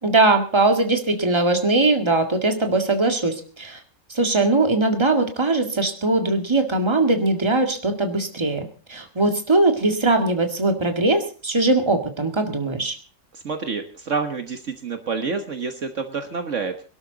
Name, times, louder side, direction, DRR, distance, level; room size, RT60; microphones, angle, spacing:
voice 1, 0.0-3.8 4.1-13.0, right 2 dB, 20° right, 5 dB, 2.0 m, -20 dB
voice 2, 13.3-16.7, right 5 dB, 55° right, 6 dB, 1.6 m, -28 dB
22.5 x 12.5 x 3.9 m, 0.38 s
omnidirectional pair, 1.5 m